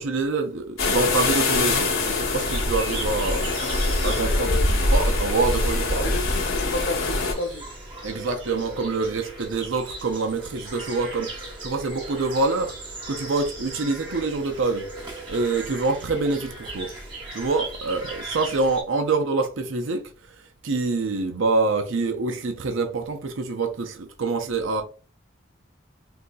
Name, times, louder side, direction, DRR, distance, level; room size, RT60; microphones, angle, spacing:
voice 1, 0.0-6.1 8.0-14.9 15.3-16.9 17.3-20.0 20.3-24.8, right 3 dB, 75° right, 0.6 m, -26 dB
sound 1, 0.8-7.3, left 2 dB, 90° left, 1.1 m, -23 dB
sound 2, 2.3-18.8, right 2 dB, 25° right, 1.0 m, -38 dB
voice 2, 4.2-4.9 6.0-7.8, left 3 dB, 55° left, 0.4 m, -32 dB
3.9 x 2.7 x 2.3 m
head